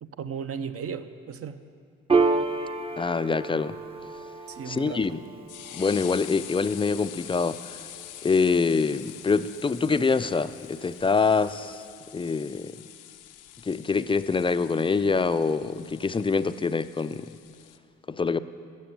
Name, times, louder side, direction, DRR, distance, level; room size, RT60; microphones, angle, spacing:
voice 1, 0.0-1.6 4.5-5.2, right 7 dB, 50° right, 10 dB, 0.8 m, -36 dB
Piano, 2.1-9.0, right 3 dB, 20° right, 0.7 m, -31 dB
voice 2, 3.0-3.8 4.7-5.2 5.7-7.8 8.2-11.8 12.1-12.8 13.7-17.3 18.1-18.4, left 4 dB, 15° left, 13 dB, 0.4 m, -25 dB
sound 1, 4.7-17.8, left 12 dB, 90° left, 0.7 m, -45 dB
15.5 x 6.7 x 8.7 m, 2.3 s
cardioid pair, 90°, 30 cm